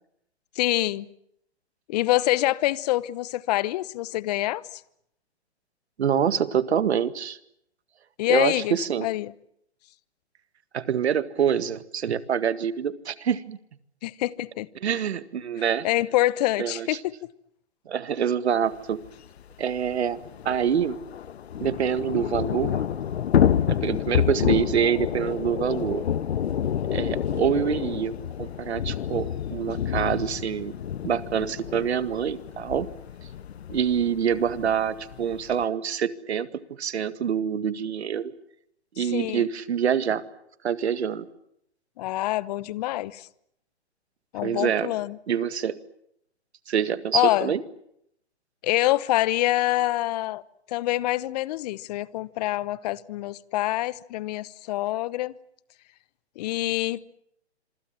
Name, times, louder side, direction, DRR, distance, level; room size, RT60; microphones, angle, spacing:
voice 1, 0.6-1.1 1.9-4.8 8.2-8.8 9.0-9.3 14.0-14.7 15.8-17.1 39.0-39.5 42.0-43.3 44.3-45.2 47.1-47.5 48.6-50.4 50.7-55.3 56.4-57.0, left 16 dB, 35° left, 0.9 m, -26 dB
voice 2, 6.0-7.4 8.3-9.1 10.7-13.6 14.8-15.9 16.6-17.0 17.9-19.0 19.6-20.2 20.5-21.0 21.6-22.8 23.7-26.0 26.9-28.1 28.4-30.7 31.0-32.9 33.7-38.3 39.0-40.2 40.6-41.3 44.4-44.9 45.3-45.8 46.7-47.6, right 8 dB, 70° right, 1.9 m, -26 dB
Thunder / Rain, 19.0-19.1 19.4-19.5 19.8-35.6, left 9 dB, 65° left, 1.2 m, -28 dB
26.5 x 24.5 x 7.5 m
hypercardioid pair, 140°, 34 cm